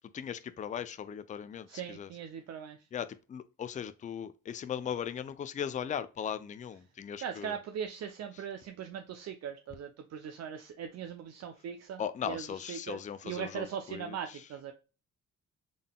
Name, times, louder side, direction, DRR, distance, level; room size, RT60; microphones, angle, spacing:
voice 1, 0.1-2.1 2.9-7.5 12.0-14.2, left 8 dB, 25° left, 0.3 m, -38 dB
voice 2, 1.7-2.9 7.2-13.0 13.2-14.7, right 8 dB, 60° right, 0.5 m, -40 dB
3.8 x 3.6 x 2.2 m
cardioid pair, 90°, 30 cm